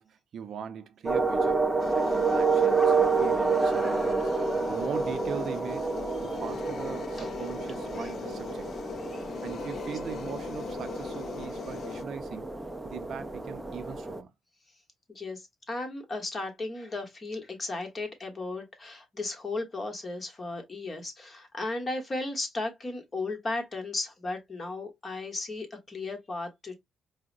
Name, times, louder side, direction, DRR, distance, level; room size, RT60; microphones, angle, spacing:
voice 1, 0.0-1.7 1.9-4.3 4.7-5.9 6.2-8.7 9.4-12.6 12.8-14.3, right 7 dB, 65° right, 0.5 m, -40 dB
sound 1, 1.1-14.2, right 4 dB, 10° right, 0.4 m, -29 dB
sound 2, 1.8-12.0, left 7 dB, 55° left, 0.3 m, -40 dB
voice 2, 15.1-26.8, left 2 dB, 35° left, 1.2 m, -35 dB
4.6 x 2.1 x 2.5 m
cardioid pair, 90°, 0 cm